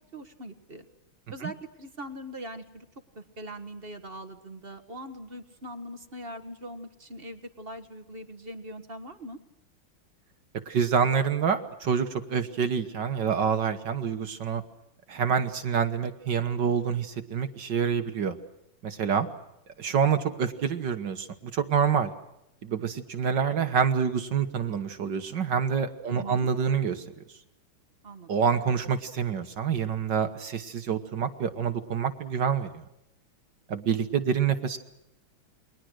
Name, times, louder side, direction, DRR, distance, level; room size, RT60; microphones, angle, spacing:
voice 1, 0.1-0.8 1.3-2.9 3.1-9.4 26.0-26.5 28.0-28.3, right 1 dB, 30° right, 8 dB, 1.6 m, -41 dB
voice 2, 10.7-14.6 15.1-18.4 18.8-19.3 19.8-22.1 22.6-27.0 28.3-32.8 33.7-34.8, right 7 dB, 60° right, 8 dB, 1.9 m, -27 dB
29.5 x 22.5 x 6.4 m, 0.85 s
omnidirectional pair, 2.3 m